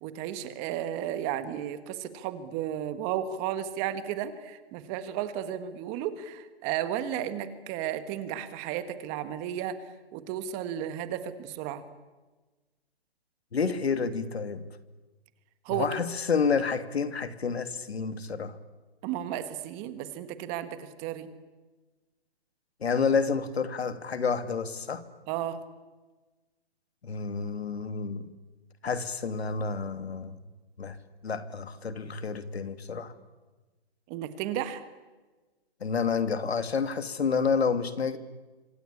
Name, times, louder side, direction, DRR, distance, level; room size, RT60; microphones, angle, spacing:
voice 1, 0.0-9.8 10.1-11.8 15.6-15.9 19.0-21.3 25.3-25.6 34.1-34.8, right 10 dB, 20° right, 12 dB, 1.5 m, -33 dB
voice 2, 13.5-14.6 15.7-18.6 22.8-25.0 27.0-28.3 28.8-30.4 30.8-31.0 31.2-33.1 35.8-38.2, left 5 dB, 80° left, 11 dB, 2.7 m, -29 dB
27.0 x 26.0 x 8.6 m, 1.2 s
hypercardioid pair, 155°, 31 cm